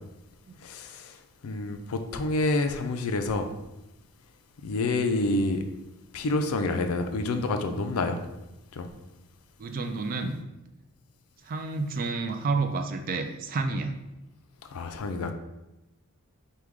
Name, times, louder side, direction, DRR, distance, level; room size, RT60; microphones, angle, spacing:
voice 1, 0.6-1.2 1.4-3.5 4.6-5.6 6.1-8.2 8.7-8.9 14.7-15.3, left 2 dB, 75° left, 7 dB, 0.4 m, -28 dB
voice 2, 9.6-10.4 11.4-14.0, right 3 dB, 40° right, 6 dB, 0.3 m, -30 dB
4.7 x 2.2 x 3.5 m, 0.95 s
head